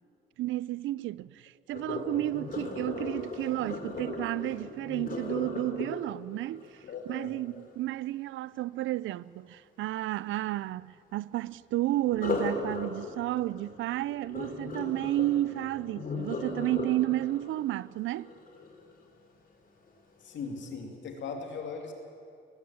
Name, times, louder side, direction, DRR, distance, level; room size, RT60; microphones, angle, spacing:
voice 1, 0.4-18.3, right 15 dB, 80° right, 0.5 m, -32 dB
Sink (filling or washing), 1.7-7.7 12.1-19.1 19.6-19.9 20.4-20.5, left 3 dB, 45° left, 3.8 m, -37 dB
voice 2, 6.9-7.4 15.9-16.1 20.2-21.9, left 5 dB, 70° left, 2.9 m, -39 dB
19.5 x 15.0 x 9.0 m
cardioid pair, 90°, 20 cm